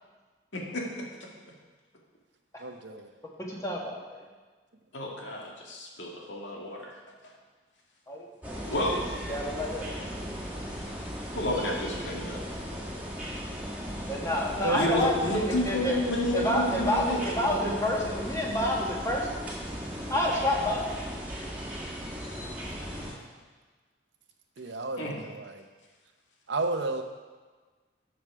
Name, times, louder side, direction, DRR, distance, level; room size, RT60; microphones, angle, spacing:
voice 1, 0.5-1.3 4.9-6.9 8.7-8.9 11.3-12.4 14.7-18.1 25.0-25.2, left 1 dB, 85° left, -1 dB, 2.0 m, -31 dB
voice 2, 2.6-3.1 14.6-15.0 24.6-25.6 26.5-27.0, right 3 dB, 75° right, 7 dB, 0.8 m, -31 dB
voice 3, 3.5-4.2 8.1-8.5 8.9-9.0 9.3-9.9 14.1-15.9 16.3-19.4 20.1-20.9, left 1 dB, 15° left, -2 dB, 1.5 m, -29 dB
sound 1, 8.4-23.1, equal, 10° right, 1.8 m, -37 dB
12.5 x 6.2 x 4.8 m, 1.4 s
head